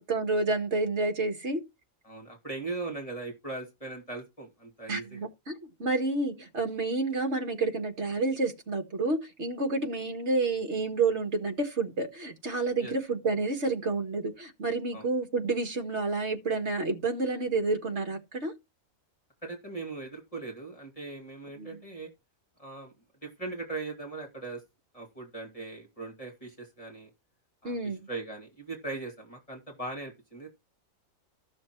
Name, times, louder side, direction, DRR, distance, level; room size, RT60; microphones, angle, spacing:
voice 1, 0.0-1.6 4.9-5.5 5.8-18.5 21.6-21.8 27.6-28.1, right 3 dB, 55° right, 2.0 m, -29 dB
voice 2, 2.0-5.3 12.8-12.9 14.9-15.1 19.4-22.1 22.6-22.9 23.2-24.6 24.9-27.1 27.6-27.8 28.1-30.5, right 3 dB, 25° left, 2.6 m, -39 dB
13.5 x 6.4 x 4.6 m
omnidirectional pair, 1.4 m